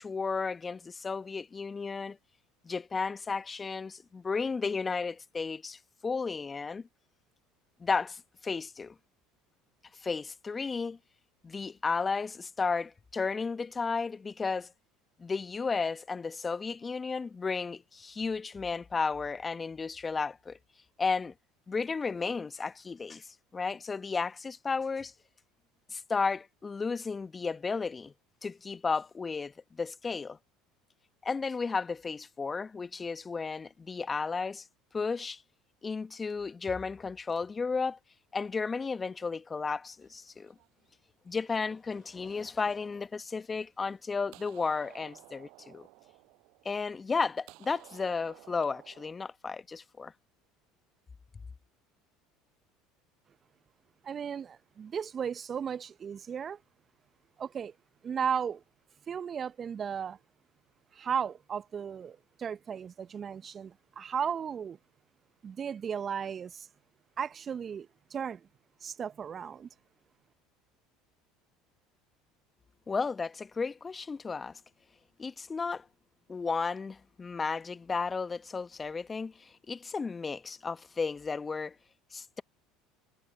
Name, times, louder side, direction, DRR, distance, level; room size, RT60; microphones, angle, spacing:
voice 1, 0.0-2.2 2.6-6.9 7.8-8.9 10.0-11.0 11.4-14.7 15.2-20.6 21.0-21.3 21.7-25.1 25.9-28.1 28.4-30.4 31.2-34.7 34.9-35.4 35.8-38.0 38.3-40.5 41.2-45.9 46.6-50.1 72.9-74.6 75.2-75.8 76.3-81.7 82.1-82.4, left 4 dB, 25° left, 1.4 m, -33 dB
sound 1, 40.0-40.9 41.3-42.9 43.5-43.9 44.2-47.2 47.5-49.1, right 25 dB, 60° right, 7.4 m, -56 dB
voice 2, 54.0-56.6 57.4-57.7 58.0-58.6 59.1-60.2 60.9-64.8 65.4-66.7 67.2-68.5 68.8-69.7, right 7 dB, 35° right, 0.9 m, -35 dB
hypercardioid pair, 70°, 0 cm